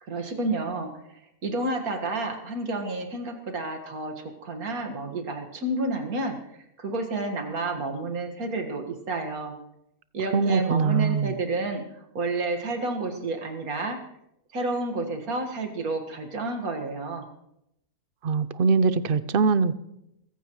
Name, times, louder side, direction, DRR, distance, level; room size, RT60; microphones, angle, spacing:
voice 1, 0.0-6.4 6.8-9.5 10.1-14.0 14.5-17.3, right 2 dB, 75° right, 4 dB, 2.3 m, -30 dB
voice 2, 10.3-11.3 18.2-19.7, right 5 dB, 55° right, 14 dB, 0.7 m, -22 dB
23.0 x 15.0 x 3.1 m, 0.82 s
omnidirectional pair, 1.5 m